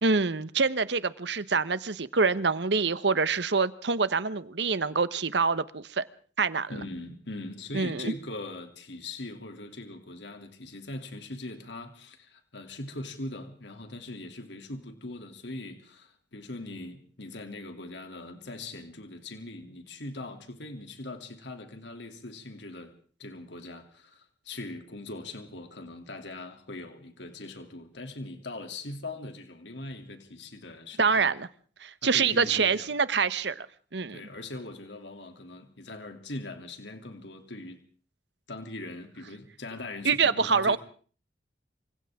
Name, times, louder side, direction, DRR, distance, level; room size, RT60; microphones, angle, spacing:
voice 1, 0.0-6.0 6.4-6.7 7.7-8.1 31.0-31.5 31.8-33.7 33.9-34.2 40.0-40.8, right 4 dB, 70° right, 1.0 m, -26 dB
voice 2, 6.7-22.9 23.2-31.3 32.0-32.9 34.1-37.8 38.5-40.8, left 2 dB, 75° left, 2.9 m, -41 dB
27.5 x 25.5 x 3.7 m
head